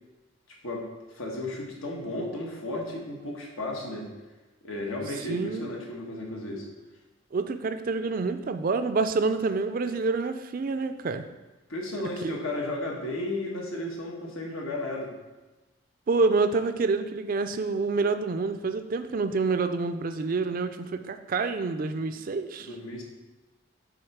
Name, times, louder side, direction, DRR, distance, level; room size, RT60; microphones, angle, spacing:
voice 1, 0.5-4.1 4.6-6.7 11.7-15.1 22.6-23.0, left 1 dB, 90° left, 0 dB, 1.3 m, -34 dB
voice 2, 5.3-5.7 7.3-11.2 12.2-12.3 16.1-22.7, right 4 dB, 40° right, 10 dB, 0.4 m, -27 dB
6.4 x 4.3 x 4.6 m, 1.1 s
head